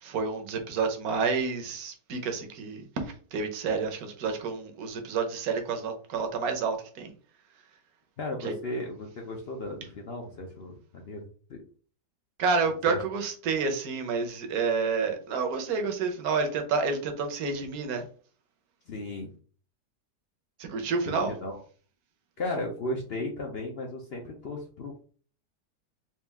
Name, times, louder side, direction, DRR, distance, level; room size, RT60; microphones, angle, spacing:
voice 1, 0.0-7.1 8.4-8.5 12.4-18.0 20.6-21.3, right 4 dB, 65° right, 1.2 m, -29 dB
voice 2, 8.2-11.6 12.9-13.0 18.9-19.3 21.1-21.6 22.4-25.1, left 2 dB, 65° left, 0.6 m, -35 dB
4.4 x 2.4 x 3.4 m
omnidirectional pair, 1.8 m